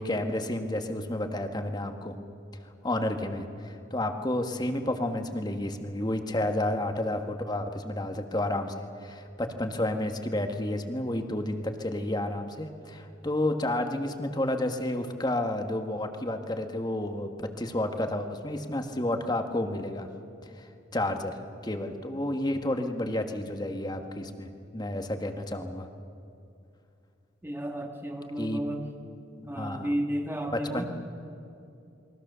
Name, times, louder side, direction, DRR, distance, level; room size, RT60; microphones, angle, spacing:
voice 1, 0.0-2.1 2.8-8.7 9.0-20.1 20.5-25.9 28.4-28.6 29.4-29.9 30.5-30.9, left 1 dB, 20° left, 6 dB, 1.5 m, -31 dB
voice 2, 27.4-28.9 29.4-30.9, equal, 10° right, 3 dB, 1.9 m, -32 dB
28.5 x 22.5 x 6.9 m, 2.6 s
head